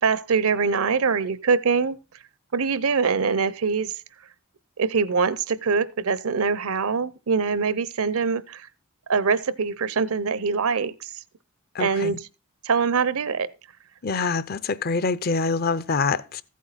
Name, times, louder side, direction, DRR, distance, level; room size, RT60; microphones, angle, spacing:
voice 1, 0.0-2.0 2.5-3.9 4.8-8.7 9.1-11.1 11.8-12.3 12.6-13.5, right 5 dB, 85° right, 0.7 m, -23 dB
voice 2, 11.7-12.2 14.0-16.4, left 4 dB, 45° left, 0.5 m, -25 dB
14.5 x 8.4 x 4.0 m
head